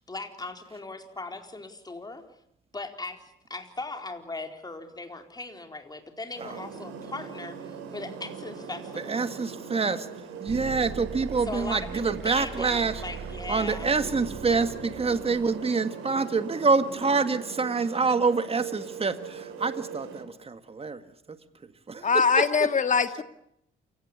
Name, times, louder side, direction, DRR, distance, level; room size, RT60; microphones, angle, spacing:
voice 1, 0.0-2.2 2.7-3.2 3.5-9.2 11.5-13.9, left 3 dB, 20° left, 5 dB, 4.4 m, -38 dB
sound 1, 6.3-20.2, right 6 dB, 85° right, 4.8 m, -41 dB
voice 2, 9.0-10.1 10.4-13.0 13.5-21.4 21.9-22.7, right 4 dB, 30° right, 10 dB, 1.9 m, -27 dB
sound 2, 10.5-15.5, right 6 dB, 70° right, 5.3 m, -40 dB
voice 3, 22.0-23.2, left 5 dB, 40° left, 9 dB, 2.1 m, -22 dB
28.5 x 17.5 x 9.7 m, 0.75 s
cardioid pair, 90°, 20 cm